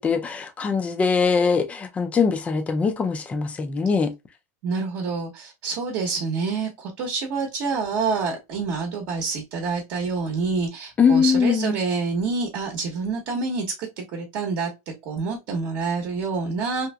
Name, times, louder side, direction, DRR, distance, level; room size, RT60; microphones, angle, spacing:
voice 1, 0.0-4.1 11.0-11.8, left 5 dB, 15° left, 0.4 m, -22 dB
voice 2, 4.6-16.9, right 4 dB, 50° right, 0.9 m, -27 dB
2.8 x 2.5 x 2.2 m
supercardioid pair, 140°, 9 cm